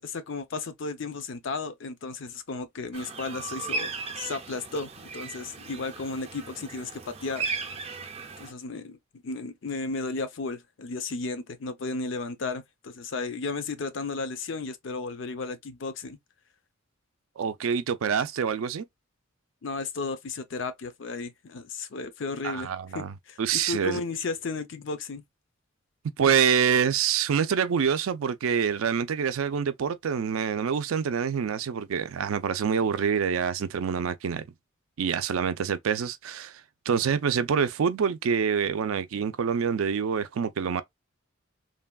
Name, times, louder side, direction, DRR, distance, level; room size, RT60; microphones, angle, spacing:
voice 1, 0.0-7.5 8.4-9.0 9.2-16.2 19.6-22.7 22.9-25.2, left 3 dB, 60° left, 0.5 m, -34 dB
sound 1, 2.9-8.5, right 4 dB, 30° right, 0.5 m, -36 dB
voice 2, 17.4-18.8 22.4-24.0 26.2-34.4 35.0-36.6 36.9-40.8, right 7 dB, 85° right, 0.4 m, -26 dB
3.2 x 2.2 x 2.2 m
head